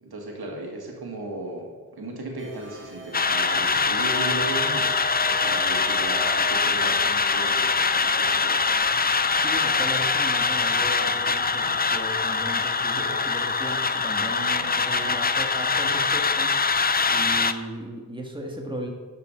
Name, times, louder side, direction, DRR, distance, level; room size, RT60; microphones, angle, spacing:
voice 1, 0.0-5.0 5.2-8.6, right 2 dB, 85° right, 0 dB, 1.8 m, -36 dB
sound 1, 2.4-16.1, right 2 dB, 30° right, 1.7 m, -41 dB
sound 2, 3.1-17.5, left 5 dB, 25° left, 0.5 m, -23 dB
voice 2, 9.4-16.5 17.1-18.9, right 1 dB, 15° right, 1 dB, 1.7 m, -36 dB
9.4 x 7.1 x 5.1 m, 1.4 s
cardioid pair, 60°, 37 cm